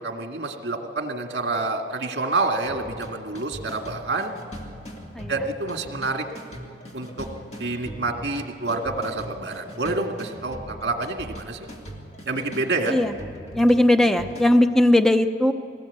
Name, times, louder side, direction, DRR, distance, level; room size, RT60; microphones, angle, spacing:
voice 1, 0.0-4.3 5.3-6.2 6.9-7.3 7.6-11.7 12.3-13.0, right 3 dB, 70° right, 3 dB, 2.0 m, -28 dB
sound 1, 2.7-14.5, equal, 40° left, 2.7 m, -40 dB
voice 2, 13.5-15.5, left 1 dB, ahead, 7 dB, 0.7 m, -18 dB
22.0 x 18.5 x 8.3 m, 2.6 s
head